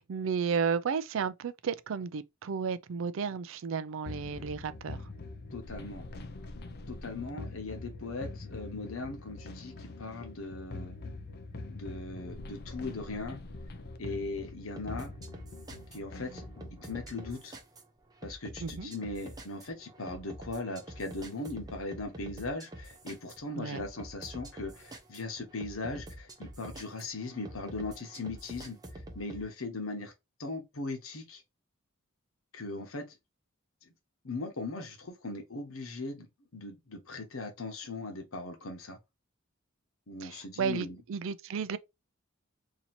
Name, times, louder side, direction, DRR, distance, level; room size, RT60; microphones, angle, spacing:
voice 1, 0.0-5.0 18.6-18.9 23.6-23.8 40.2-41.8, right 6 dB, 70° right, 0.4 m, -33 dB
sound 1, 4.1-17.4, left 2 dB, 50° left, 0.5 m, -44 dB
voice 2, 5.5-6.1 6.9-11.0 11.7-13.4 14.0-15.1 15.9-16.4 16.7-17.6 18.2-30.1 30.4-31.4 32.5-33.1 34.2-39.0 40.1-41.0, left 2 dB, 90° left, 1.1 m, -39 dB
sound 2, 14.8-29.5, right 1 dB, 20° right, 0.7 m, -47 dB
2.9 x 2.7 x 4.1 m
head